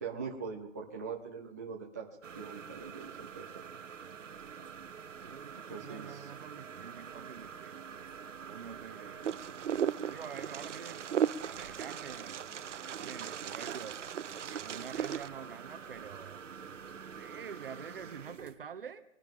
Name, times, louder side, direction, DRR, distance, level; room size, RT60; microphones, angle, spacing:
voice 1, 0.0-3.5 5.7-6.3, right 5 dB, 15° right, 0.6 m, -42 dB
sound 1, 2.2-18.5, right 6 dB, 90° right, 1.3 m, -47 dB
voice 2, 5.2-7.8 8.4-9.4 10.1-11.1 11.4-12.4 12.8-14.0 14.2-16.7 17.0-19.0, right 7 dB, 45° right, 1.1 m, -47 dB
Wind, 9.2-15.3, right 9 dB, 75° right, 0.7 m, -36 dB
23.5 x 10.5 x 3.7 m
hypercardioid pair, 170°, 37 cm